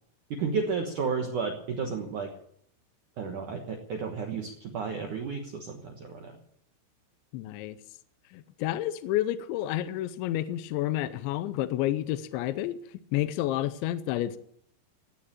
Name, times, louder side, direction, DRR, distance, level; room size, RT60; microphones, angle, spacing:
voice 1, 0.3-2.3 3.2-6.3, right 5 dB, 80° right, 3 dB, 1.8 m, -32 dB
voice 2, 7.3-7.8 8.3-12.8 13.1-14.4, left 13 dB, 80° left, 12 dB, 2.7 m, -30 dB
16.5 x 9.0 x 8.7 m, 0.68 s
omnidirectional pair, 5.9 m